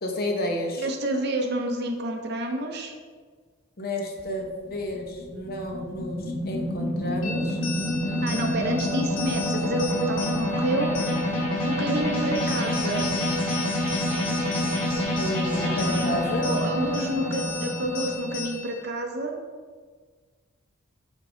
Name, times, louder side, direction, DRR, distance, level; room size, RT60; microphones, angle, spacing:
voice 1, 0.0-0.9 3.8-7.6 14.9-16.5, left 1 dB, 45° left, 2 dB, 0.9 m, -31 dB
voice 2, 0.8-2.9 8.2-10.9 11.7-13.1 16.4-19.4, right 1 dB, 50° right, 3 dB, 0.9 m, -29 dB
sound 1, 4.2-18.4, left 1 dB, 20° left, 2.1 m, -27 dB
sound 2, 7.2-18.8, left 4 dB, 70° left, 1.1 m, -37 dB
7.7 x 3.8 x 5.0 m, 1.5 s
head